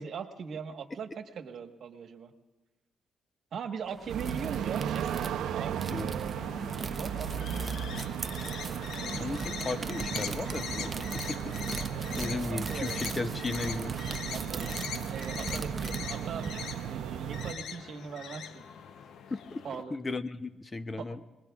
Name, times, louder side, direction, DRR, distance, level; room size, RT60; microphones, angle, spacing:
voice 1, 0.0-2.3 3.5-5.1 5.5-6.4 6.9-7.9 12.5-13.1 14.3-16.5 16.9-18.7 19.6-20.0 21.0-21.1, right 6 dB, 60° right, 5 dB, 1.3 m, -40 dB
sound 1, 3.9-16.5, right 4 dB, 30° right, 0.6 m, -40 dB
sound 2, 4.1-17.5, right 9 dB, 80° right, 0.6 m, -36 dB
sound 3, 6.3-19.8, left 7 dB, 75° left, 0.7 m, -42 dB
voice 2, 9.2-11.6 11.9-14.0 19.3-21.2, left 3 dB, 25° left, 11 dB, 0.7 m, -36 dB
26.5 x 20.5 x 2.4 m, 1.1 s
cardioid pair, 90°, 0 cm